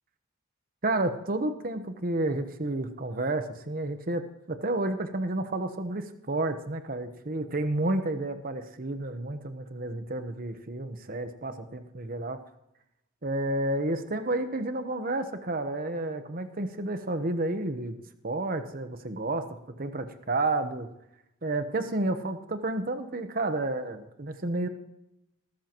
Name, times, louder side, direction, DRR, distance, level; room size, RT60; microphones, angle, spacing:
voice 1, 0.8-12.4 13.2-18.0 18.2-20.9 21.4-24.7, right 2 dB, 45° right, 8 dB, 1.0 m, -31 dB
19.0 x 13.0 x 3.0 m, 0.84 s
head